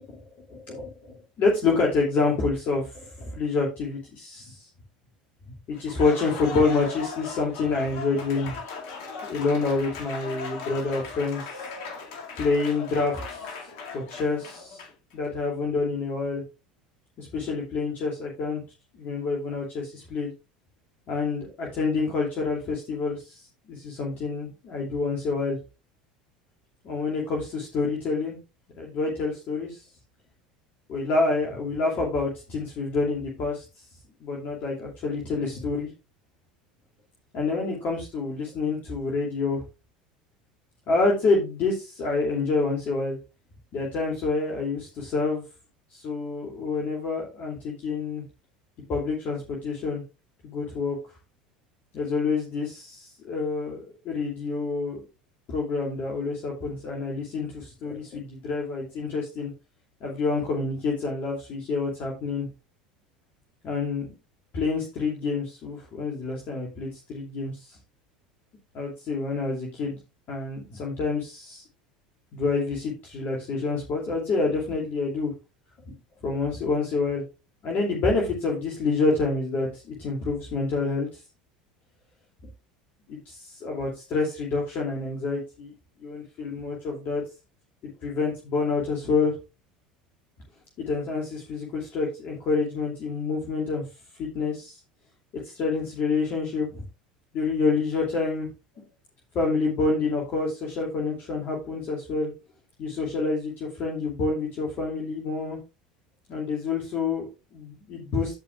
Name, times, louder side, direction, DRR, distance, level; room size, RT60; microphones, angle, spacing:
voice 1, 0.1-4.7 5.7-8.6 9.3-11.7 12.4-13.5 13.9-14.8 15.1-16.4 17.2-18.6 18.9-20.3 21.1-25.6 26.8-28.4 28.8-29.8 30.9-33.6 34.2-35.9 37.3-39.6 40.9-43.2 43.7-45.4 45.9-48.2 48.9-50.0 50.4-51.0 51.9-55.0 55.5-59.5 60.0-62.5 63.6-64.1 64.5-67.8 68.7-70.0 70.3-71.6 72.3-75.3 75.9-76.0 76.2-77.2 77.6-81.2 83.1-85.7 86.0-87.2 88.0-89.3 90.8-93.8 94.2-94.8 95.4-96.8 97.3-98.5 99.3-102.3 102.8-105.6 106.3-108.4, left 3 dB, 45° left, -2 dB, 2.6 m, -27 dB
Applause, 5.7-15.1, left 5 dB, 60° left, 2.2 m, -38 dB
15.5 x 5.3 x 2.4 m, 0.28 s
figure-of-eight pair, 70°, 4 cm